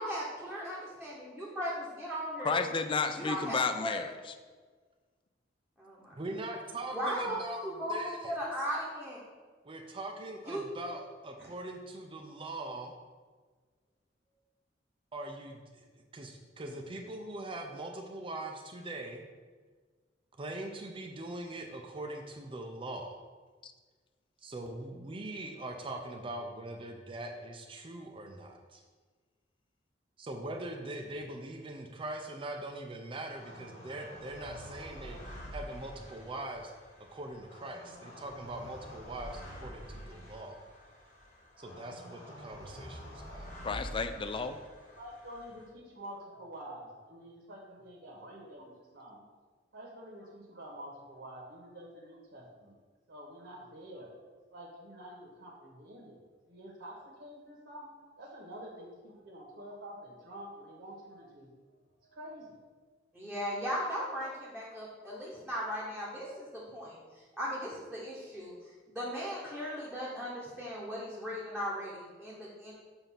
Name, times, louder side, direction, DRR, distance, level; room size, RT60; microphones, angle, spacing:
voice 1, 0.0-2.6 3.2-4.0 5.8-6.1 6.9-7.3 7.6-9.2 10.5-10.6 63.1-72.7, equal, ahead, -7 dB, 1.0 m, -37 dB
voice 2, 2.4-4.1 23.6-23.7 43.6-44.6, left 4 dB, 30° left, 8 dB, 0.4 m, -32 dB
voice 3, 6.1-8.3 9.6-12.9 15.1-19.3 20.4-23.2 24.4-28.8 30.2-36.7 37.0-40.6 41.6-43.5, right 2 dB, 30° right, 2 dB, 0.5 m, -42 dB
sound 1, 33.3-45.7, equal, 45° left, 1.7 m, -48 dB
voice 4, 44.9-49.2 49.7-52.8 53.1-54.2 54.5-56.2 56.5-62.6, equal, 70° right, -4 dB, 1.3 m, -48 dB
7.0 x 2.7 x 5.7 m, 1.5 s
head